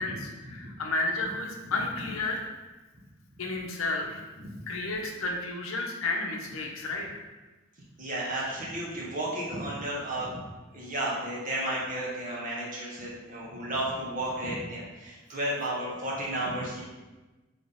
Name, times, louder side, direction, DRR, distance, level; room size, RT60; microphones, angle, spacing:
voice 1, 0.0-2.4 3.4-4.2 4.7-7.2, left 2 dB, 75° left, 1 dB, 0.7 m, -32 dB
voice 2, 8.0-10.4 10.7-16.8, right 1 dB, 40° right, -4 dB, 1.0 m, -33 dB
4.2 x 3.4 x 3.5 m, 1.2 s
head